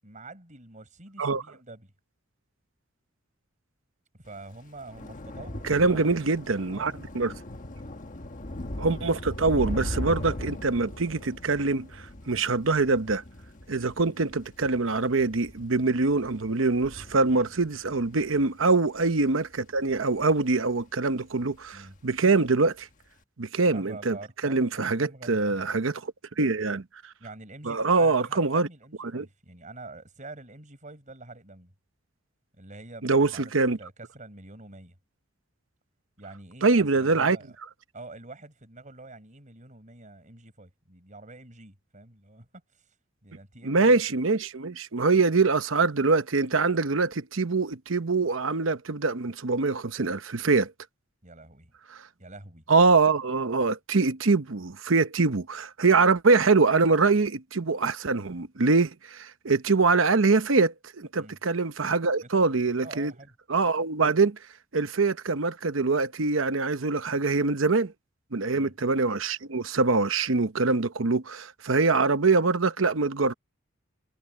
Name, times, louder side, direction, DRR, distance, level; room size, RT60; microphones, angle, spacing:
voice 1, 0.0-1.9 4.2-6.0 6.7-7.1 17.3-17.5 21.7-22.0 23.6-25.6 27.2-31.7 32.6-33.5 33.8-34.9 36.2-37.6 37.9-42.5 43.2-44.0 51.2-51.7 52.2-52.6 61.2-61.4 62.2-63.3 68.5-68.7, right 2 dB, 40° right, 7.5 m, -46 dB
Thunder / Rain, 4.4-20.9 21.3-21.7 22.0-22.2, left 1 dB, 40° left, 1.4 m, -39 dB
voice 2, 5.6-7.3 8.8-13.2 13.7-22.9 23.4-24.2 24.4-26.8 27.6-28.7 29.0-29.2 33.0-33.8 36.6-37.4 43.6-50.7 51.9-52.0 52.7-63.1 63.5-64.4 64.7-67.9 68.3-73.3, right 3 dB, 75° right, 1.0 m, -24 dB
head